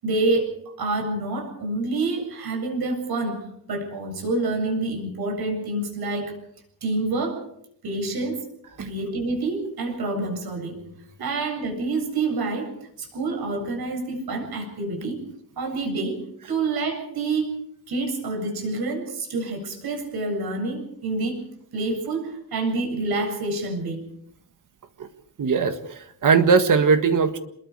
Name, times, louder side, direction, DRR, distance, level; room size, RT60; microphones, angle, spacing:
voice 1, 0.0-6.4 6.8-7.4 7.8-8.5 8.8-10.8 11.2-15.2 15.6-17.6 17.9-21.5 21.7-24.1, right 3 dB, 65° right, 3 dB, 7.6 m, -27 dB
voice 2, 25.4-27.4, right 5 dB, 50° right, 8 dB, 1.7 m, -20 dB
28.5 x 21.5 x 4.9 m, 0.69 s
wide cardioid pair, 150°, 39 cm